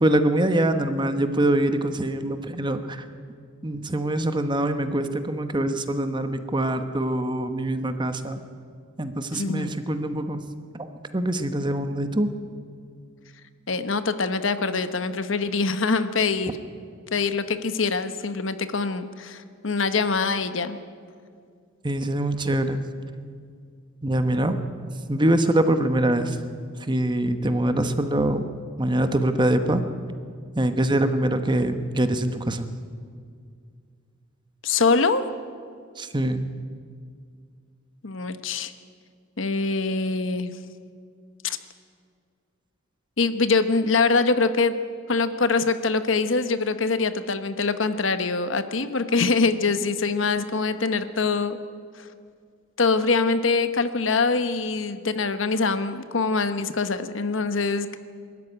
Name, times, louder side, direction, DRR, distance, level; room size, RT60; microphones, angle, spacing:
voice 1, 0.0-3.0 3.6-8.4 9.0-10.4 11.1-12.3 21.8-22.8 24.0-24.6 25.1-26.4 26.9-28.4 28.8-29.8 30.6-32.7 36.0-36.5, right 1 dB, 25° right, 9 dB, 1.1 m, -24 dB
voice 2, 9.3-9.8 13.7-16.5 17.1-20.8 34.6-35.2 38.0-38.7 39.4-40.5 41.4-41.6 43.2-44.8 45.1-51.6 52.0-52.1 52.8-58.0, left 4 dB, 70° left, 10 dB, 1.1 m, -24 dB
22.0 x 13.5 x 10.0 m, 2.1 s
head